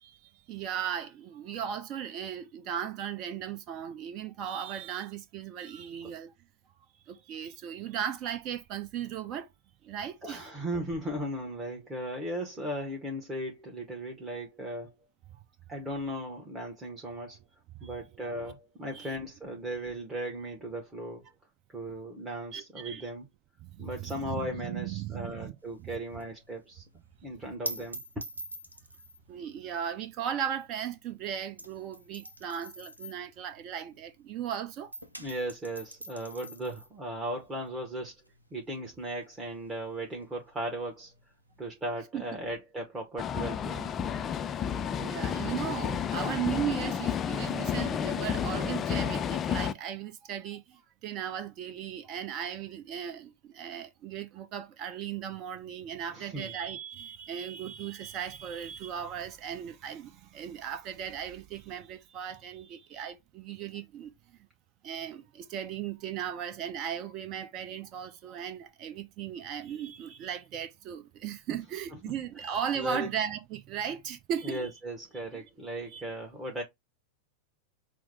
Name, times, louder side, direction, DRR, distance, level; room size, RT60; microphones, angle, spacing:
voice 1, 0.0-6.3 7.1-9.5 9.8-10.5 17.8-18.0 18.9-19.2 22.5-23.1 23.6-25.5 25.8-26.0 29.3-34.9 42.1-42.2 45.0-64.1 64.8-74.6 75.3-75.4 75.9-76.0, right 9 dB, 35° right, 0.8 m, -37 dB
voice 2, 10.2-14.9 15.7-17.4 17.8-21.3 21.7-23.3 23.8-26.8 27.2-28.2 35.2-38.1 38.5-41.1 41.6-43.9 56.1-56.5 72.0-72.1 72.7-73.1 74.4-76.6, right 1 dB, 15° right, 1.1 m, -37 dB
sound 1, 25.6-34.5 34.8-42.0, right 1 dB, 85° right, 0.8 m, -45 dB
sound 2, 43.2-49.7, left 8 dB, 25° left, 0.4 m, -31 dB
6.1 x 2.1 x 3.3 m
figure-of-eight pair, 90°, 0 cm